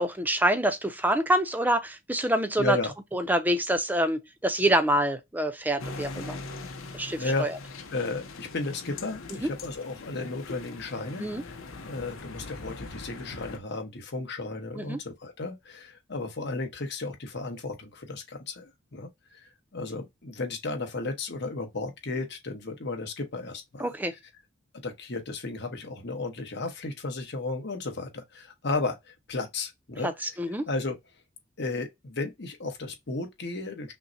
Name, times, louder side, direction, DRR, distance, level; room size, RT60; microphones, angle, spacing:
voice 1, 0.0-2.8 3.1-6.4 6.9-7.5 9.4-9.5 11.2-11.4 14.8-15.0 23.8-24.1 30.0-30.7, right 1 dB, 10° right, 0.5 m, -26 dB
voice 2, 2.6-2.9 6.6-6.7 7.2-7.5 7.9-11.5 11.8-19.4 19.7-23.9 24.8-30.4 30.7-31.0 31.6-33.9, left 3 dB, 60° left, 1.1 m, -34 dB
sound 1, 5.8-13.6, left 3 dB, 85° left, 0.7 m, -41 dB
5.7 x 2.1 x 2.7 m
head